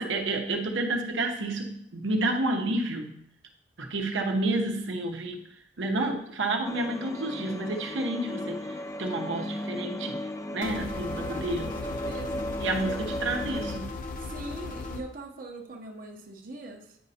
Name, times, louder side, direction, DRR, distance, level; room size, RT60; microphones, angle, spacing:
voice 1, 0.0-3.1 3.8-5.4 5.8-10.2 10.5-11.7 12.6-13.9, right 2 dB, 85° right, 3 dB, 0.9 m, -30 dB
sound 1, 6.6-13.8, left 1 dB, 15° left, 0.3 m, -35 dB
sound 2, 10.6-15.0, left 3 dB, 45° left, 0.7 m, -37 dB
voice 2, 11.1-12.5 12.9-13.0 14.2-17.0, right 2 dB, 50° right, 2 dB, 0.8 m, -42 dB
9.4 x 5.3 x 2.8 m, 0.74 s
head